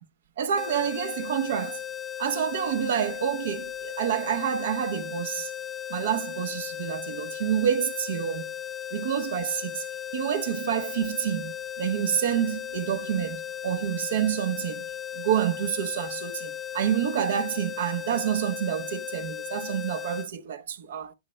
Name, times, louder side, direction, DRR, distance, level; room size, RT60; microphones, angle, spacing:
voice 1, 0.4-1.8 2.2-5.5 5.9-8.5 8.9-9.8 10.1-14.9 15.1-21.1, right 9 dB, 70° right, 1.0 m, -28 dB
sound 1, 0.6-20.3, left 10 dB, 15° left, 0.5 m, -36 dB
12.0 x 6.4 x 2.2 m
hypercardioid pair, 135°, 0 cm